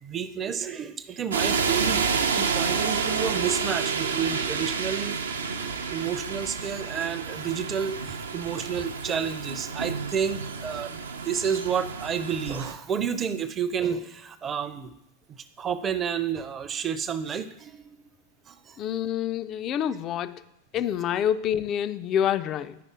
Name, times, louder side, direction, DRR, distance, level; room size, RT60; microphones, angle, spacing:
voice 1, 0.0-2.1 2.4-5.2 5.9-14.9 15.6-18.0 18.5-18.8, right 7 dB, 25° right, 0.5 m, -30 dB
sound 1, 1.3-12.7, right 5 dB, 70° right, 0.5 m, -29 dB
voice 2, 18.8-20.4 20.7-22.8, left 9 dB, 35° left, 0.3 m, -27 dB
9.3 x 5.4 x 3.6 m
figure-of-eight pair, 90°, 0 cm